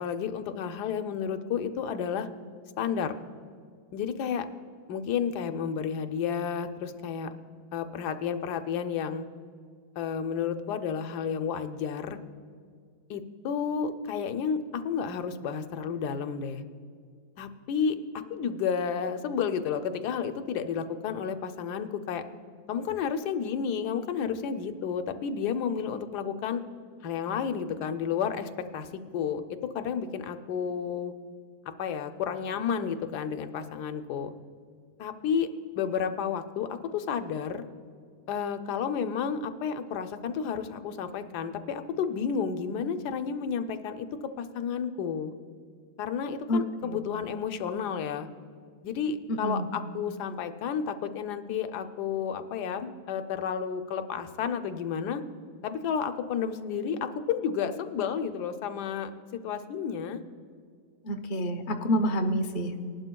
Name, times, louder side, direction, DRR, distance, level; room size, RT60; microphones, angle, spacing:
voice 1, 0.0-2.3 2.8-3.1 3.9-4.5 4.9-7.3 7.7-9.2 10.0-12.2 13.1-16.6 17.4-18.0 18.3-22.2 22.7-26.6 27.0-29.4 29.7-31.1 31.8-34.3 35.0-35.5 35.7-37.6 38.3-44.1 44.4-45.3 46.0-48.3 48.8-55.2 55.6-60.2, left 7 dB, 80° left, 9 dB, 1.2 m, -31 dB
voice 2, 46.5-47.0 49.3-49.7 61.0-62.8, equal, 50° left, 3 dB, 0.6 m, -28 dB
19.5 x 11.5 x 2.3 m, 2.1 s
omnidirectional pair, 1.7 m